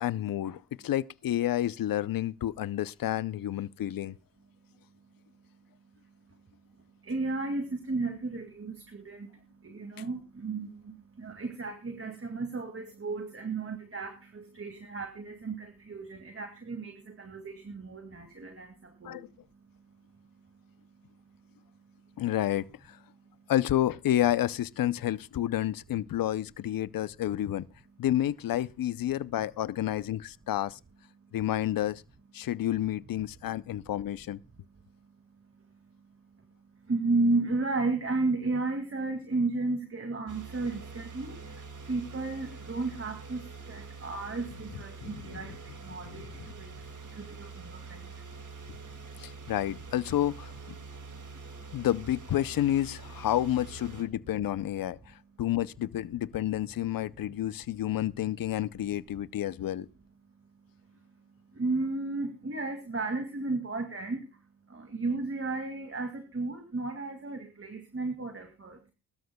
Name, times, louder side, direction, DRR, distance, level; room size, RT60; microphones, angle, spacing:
voice 1, 0.0-4.2 19.0-19.3 22.2-23.0 23.5-27.7 28.0-30.8 31.3-32.0 32.3-34.4 45.0-45.1 49.2-50.5 51.7-59.9, left 12 dB, 65° left, 0.6 m, -30 dB
voice 2, 7.1-9.3 9.6-18.7 19.0-19.2 36.9-41.4 41.9-43.4 43.7-45.6 45.8-46.3 46.6-46.7 47.1-48.0 61.6-64.2 64.7-68.8, right 3 dB, 35° right, 2.2 m, -33 dB
sound 1, 40.3-54.0, right 4 dB, 50° right, 2.2 m, -45 dB
22.0 x 13.0 x 2.2 m
cardioid pair, 70°, 38 cm